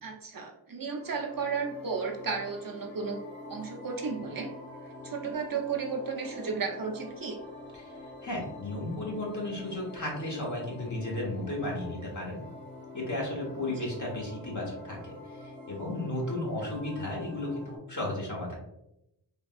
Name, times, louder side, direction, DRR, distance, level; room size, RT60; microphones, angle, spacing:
voice 1, 0.0-3.2 3.5-4.5 5.0-7.4 13.8-13.9, right 5 dB, 50° right, 2 dB, 0.5 m, -34 dB
sound 1, 0.9-17.8, left 2 dB, 25° left, 0.9 m, -46 dB
voice 2, 8.2-12.4 12.9-15.1 15.4-18.5, left 1 dB, 45° left, -2 dB, 1.1 m, -34 dB
3.3 x 2.3 x 2.4 m, 0.85 s
wide cardioid pair, 50°, 43 cm